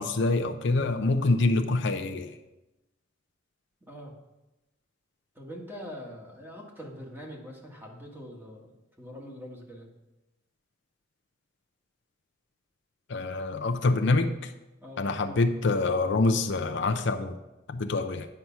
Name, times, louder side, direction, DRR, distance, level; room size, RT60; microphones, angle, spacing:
voice 1, 0.0-2.3 13.1-14.5 15.0-17.4 17.7-18.3, left 3 dB, 65° left, 6 dB, 0.6 m, -26 dB
voice 2, 5.3-9.9 14.8-15.1, equal, 10° right, -1 dB, 1.7 m, -43 dB
9.5 x 5.8 x 5.9 m, 0.99 s
head